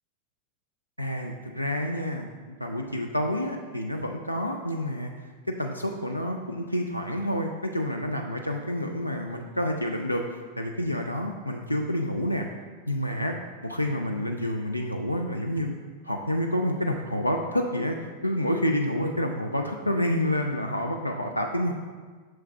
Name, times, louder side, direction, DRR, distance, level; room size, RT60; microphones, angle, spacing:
voice 1, 1.0-5.1 5.5-12.5 12.9-13.4 13.6-15.7 16.0-18.0 18.2-21.7, equal, 85° left, 3 dB, 0.4 m, -28 dB
7.7 x 6.4 x 2.3 m, 1.4 s
figure-of-eight pair, 90°, 0 cm